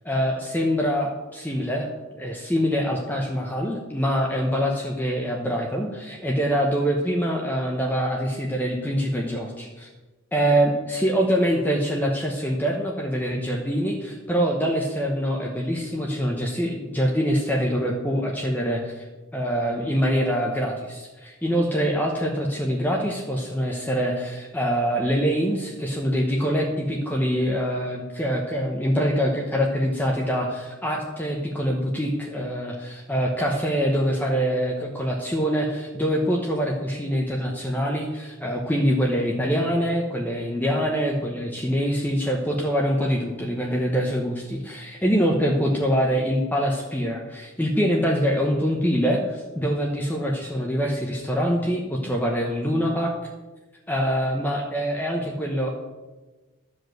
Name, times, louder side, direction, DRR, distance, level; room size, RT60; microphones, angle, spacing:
voice 1, 0.0-9.9 10.3-19.1 19.3-53.1 53.9-55.7, equal, 10° left, -1 dB, 0.9 m, -24 dB
12.5 x 5.2 x 7.8 m, 1.2 s
head